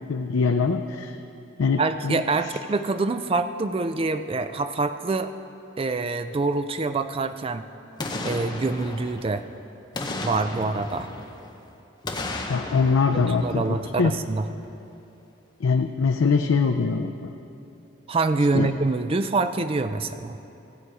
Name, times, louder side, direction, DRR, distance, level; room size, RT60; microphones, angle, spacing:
voice 1, 0.1-1.1 1.6-2.2 12.5-13.6 14.0-14.1 15.6-17.3 18.5-18.7, left 4 dB, 80° left, 4 dB, 0.4 m, -22 dB
voice 2, 1.8-5.3 5.8-7.6 8.2-9.4 10.2-11.1 13.1-14.5 18.1-20.4, right 3 dB, 25° right, 10 dB, 0.3 m, -25 dB
Boom, 8.0-9.5 9.9-11.6 12.0-14.3 14.7-14.8, left 2 dB, 20° left, 0.7 m, -34 dB
15.5 x 7.7 x 4.8 m, 2.8 s
head